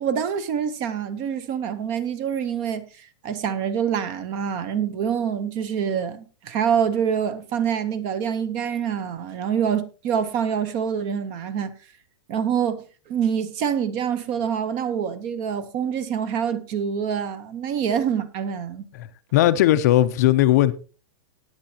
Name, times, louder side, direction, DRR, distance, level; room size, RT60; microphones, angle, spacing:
voice 1, 0.0-11.7 12.3-18.9, right 8 dB, 25° right, 0.7 m, -26 dB
voice 2, 18.9-20.7, left 14 dB, 35° left, 0.5 m, -18 dB
18.0 x 9.5 x 2.8 m
supercardioid pair, 175°, 15 cm